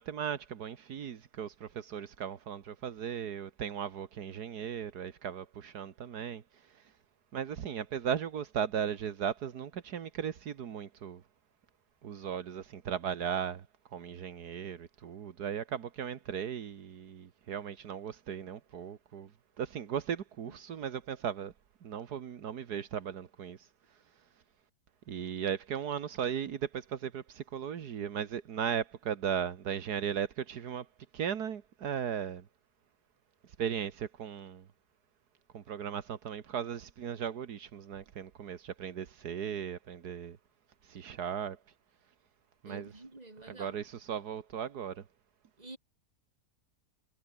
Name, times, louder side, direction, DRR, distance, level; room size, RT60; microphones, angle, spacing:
voice 1, 0.0-6.4 6.7-6.8 7.3-11.2 12.0-13.6 13.9-19.3 19.6-21.5 21.8-23.7 25.1-30.9 31.1-32.4 33.6-34.7 35.5-40.4 40.8-41.6 42.6-42.9 43.5-45.0, right 8 dB, 80° right, 1.8 m, -37 dB
voice 2, 42.7-43.8 45.6-45.8, right 2 dB, 25° right, 3.5 m, -48 dB
omnidirectional pair, 1.7 m